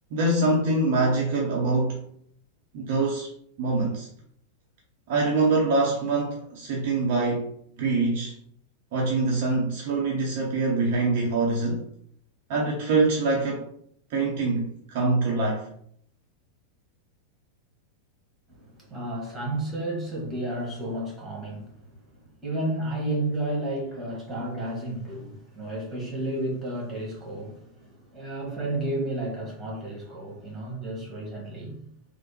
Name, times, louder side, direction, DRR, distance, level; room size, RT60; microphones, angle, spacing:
voice 1, 0.1-2.0 2.7-3.3 3.6-4.1 5.1-7.4 7.8-8.3 8.9-11.8 12.5-13.6 14.1-15.7, right 3 dB, 50° right, 0.6 m, -24 dB
voice 2, 18.5-21.9 22.4-31.8, right 1 dB, 15° right, 1.4 m, -32 dB
3.2 x 2.1 x 2.9 m
figure-of-eight pair, 90°, 0 cm